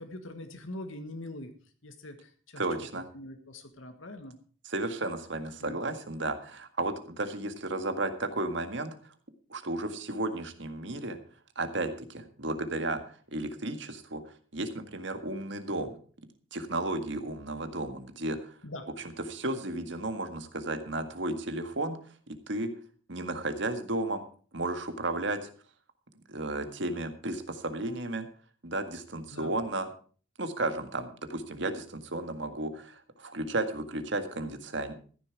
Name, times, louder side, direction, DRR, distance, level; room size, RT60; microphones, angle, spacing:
voice 1, 0.0-1.5 1.8-2.6 3.1-4.4 5.6-6.0 18.6-18.8 29.3-29.5, left 1 dB, 80° left, 6 dB, 1.6 m, -43 dB
voice 2, 2.6-3.1 4.6-8.9 9.5-11.2 11.6-14.2 14.5-15.9 16.5-18.5 19.0-22.0 22.3-22.7 23.1-24.3 24.5-25.5 26.3-28.3 28.6-29.9 30.4-34.9, right 2 dB, 65° right, 8 dB, 1.8 m, -33 dB
14.5 x 10.5 x 4.7 m, 0.42 s
head